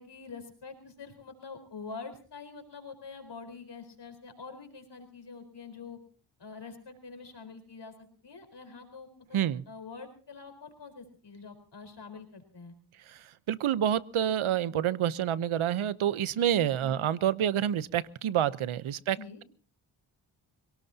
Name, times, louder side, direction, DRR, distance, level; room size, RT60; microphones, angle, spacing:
voice 1, 0.0-6.0 6.4-9.1 9.7-12.7 16.8-17.0 19.1-19.4, left 4 dB, 55° left, 6 dB, 4.4 m, -45 dB
voice 2, 9.3-9.6 13.1-19.4, right 10 dB, 75° right, 17 dB, 0.9 m, -28 dB
26.0 x 17.5 x 2.8 m, 0.39 s
cardioid pair, 60°, 48 cm